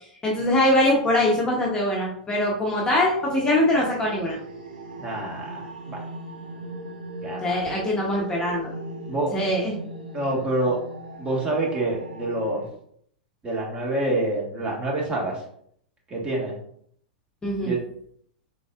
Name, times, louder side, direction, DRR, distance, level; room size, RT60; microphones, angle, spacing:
voice 1, 0.2-4.4 7.4-8.7 9.3-9.8 17.4-17.8, left 1 dB, 15° left, -3 dB, 1.0 m, -22 dB
sound 1, 2.5-12.7, right 1 dB, 85° right, 0.9 m, -39 dB
voice 2, 5.0-6.0 7.2-7.4 9.1-9.3 10.1-10.8 11.2-12.6 13.4-15.4 16.1-16.6 17.6-17.8, right 2 dB, 20° right, -2 dB, 1.5 m, -27 dB
4.0 x 3.9 x 2.4 m, 0.66 s
hypercardioid pair, 115°, 5 cm